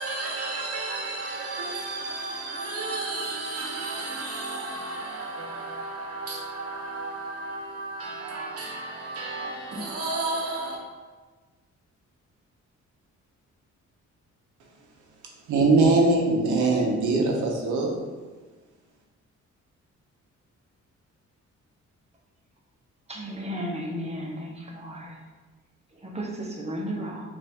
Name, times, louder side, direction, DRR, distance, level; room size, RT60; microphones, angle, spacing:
voice 1, 0.0-10.8, right 2 dB, 50° right, 0.9 m, -33 dB
voice 2, 15.5-18.0, right 3 dB, 80° right, 0.7 m, -21 dB
voice 3, 23.1-25.0 26.1-26.3 26.6-27.2, equal, 20° right, 0.7 m, -33 dB
4.1 x 2.5 x 3.5 m
cardioid pair, 100°, 30 cm